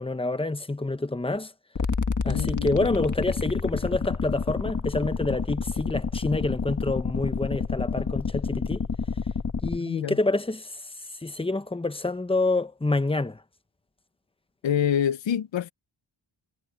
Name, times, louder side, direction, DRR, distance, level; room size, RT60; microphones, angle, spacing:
voice 1, 0.0-1.5 2.2-8.8 9.6-10.8 11.2-13.4, left 2 dB, 10° left, 0.9 m, -27 dB
sound 1, 1.8-9.8, left 5 dB, 40° left, 1.4 m, -29 dB
voice 2, 2.3-2.9 9.8-10.2 14.6-15.7, left 9 dB, 70° left, 0.7 m, -27 dB
wide cardioid pair, 130°, 47 cm